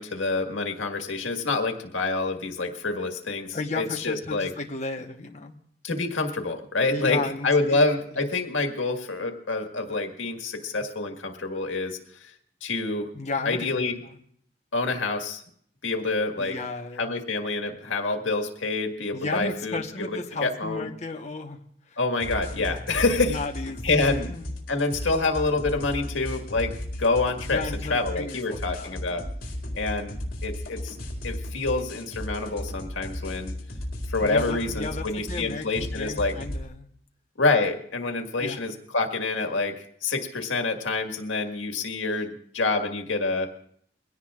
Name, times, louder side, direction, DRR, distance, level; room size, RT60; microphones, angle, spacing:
voice 1, 0.0-4.5 5.8-12.3 12.6-13.1 13.5-14.0 14.7-15.4 15.8-16.6 17.0-19.8 20.4-20.9 22.0-23.4 23.8-24.3 24.7-29.3 29.8-30.2 30.4-31.0 31.2-33.5 34.1-36.4 37.4-43.5, left 3 dB, 90° left, 4 dB, 1.7 m, -27 dB
voice 2, 3.5-5.6 6.9-7.8 13.1-14.2 16.4-17.1 19.1-21.6 21.9-22.0 22.6-22.8 23.3-24.5 27.5-29.1 34.2-36.9 38.4-38.6, left 3 dB, 35° left, 2 dB, 1.1 m, -34 dB
sound 1, 22.2-36.6, left 1 dB, 55° left, 4.1 m, -35 dB
22.5 x 17.0 x 2.5 m, 0.63 s
head